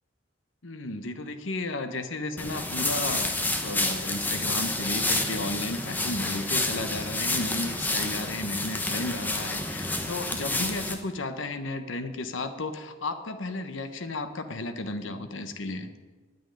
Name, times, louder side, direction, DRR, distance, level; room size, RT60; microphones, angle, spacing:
voice 1, 0.6-3.4 3.6-15.9, left 2 dB, 75° left, 8 dB, 1.1 m, -33 dB
sound 1, 2.4-10.9, left 2 dB, 10° left, 1.0 m, -29 dB
9.5 x 9.1 x 9.9 m, 1.3 s
head